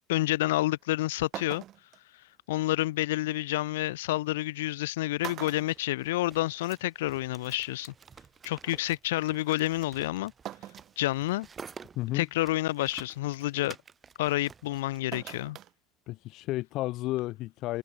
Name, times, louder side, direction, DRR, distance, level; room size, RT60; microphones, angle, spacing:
voice 1, 0.1-1.6 2.5-7.9 8.4-10.3 11.0-11.5 12.1-13.8 14.2-15.6, left 17 dB, 85° left, 1.5 m, -29 dB
sound 1, 0.8-0.9 1.3-2.0 3.6-3.7 4.7-4.8 5.2-6.6 6.9-7.0 8.3-8.4 10.5-11.0 11.5-11.6 12.2-12.5 15.1-15.7 16.1-16.2, right 13 dB, 60° right, 1.2 m, -42 dB
sound 2, 5.6-15.0, right 6 dB, 35° right, 3.2 m, -50 dB
voice 2, 12.0-12.3 16.1-17.8, left 17 dB, 65° left, 0.8 m, -32 dB
hypercardioid pair, 75°, 0 cm